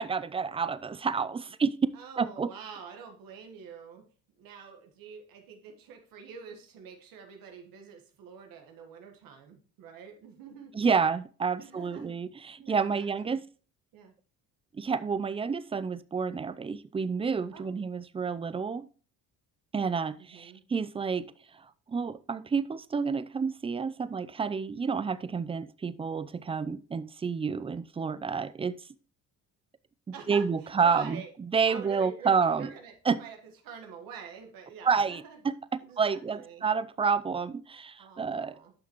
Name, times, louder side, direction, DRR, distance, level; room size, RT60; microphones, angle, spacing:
voice 1, 0.0-1.7 2.2-2.5 10.7-13.4 14.7-18.9 19.7-21.3 21.5-28.8 30.3-31.2 31.5-32.7 33.1-33.2 34.8-35.5 36.0-38.6, right 5 dB, 15° right, 0.4 m, -29 dB
voice 2, 1.9-4.0 4.4-10.7 11.6-12.1 12.6-13.4 13.9-14.1 17.5-17.8 20.2-20.6 30.1-31.3 31.7-33.4 33.6-35.4 35.8-36.7 38.0-38.7, right 6 dB, 75° right, 1.5 m, -46 dB
9.9 x 5.9 x 3.0 m
supercardioid pair, 85°, 35 cm